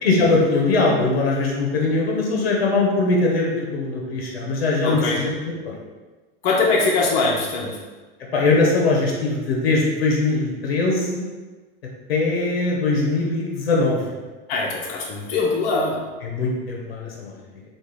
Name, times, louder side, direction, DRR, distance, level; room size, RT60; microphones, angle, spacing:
voice 1, 0.0-5.7 8.3-11.3 12.1-14.1 16.2-17.4, left 3 dB, 85° left, -2 dB, 0.8 m, -21 dB
voice 2, 4.8-5.2 6.4-7.8 14.5-16.0, left 3 dB, 60° left, -3 dB, 0.8 m, -22 dB
3.6 x 2.5 x 3.1 m, 1.3 s
hypercardioid pair, 100°, 29 cm